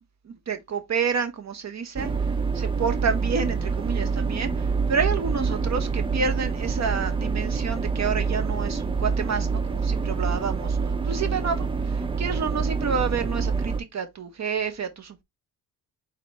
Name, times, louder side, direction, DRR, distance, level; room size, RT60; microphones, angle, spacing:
voice 1, 0.2-2.1 2.5-15.2, right 6 dB, 35° right, 1.0 m, -29 dB
sound 1, 2.0-13.8, right 5 dB, 10° right, 0.4 m, -26 dB
4.0 x 2.1 x 3.9 m
supercardioid pair, 60°, 47 cm